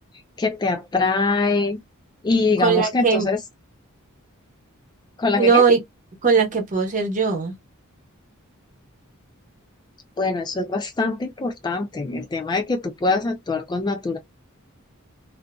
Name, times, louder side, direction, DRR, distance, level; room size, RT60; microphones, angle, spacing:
voice 1, 0.4-1.8 2.2-3.4 5.2-5.6 10.2-14.2, left 3 dB, 20° left, 0.3 m, -23 dB
voice 2, 2.6-3.3 5.4-5.8 6.2-7.5, right 5 dB, 35° right, 0.9 m, -19 dB
2.6 x 2.4 x 2.2 m
head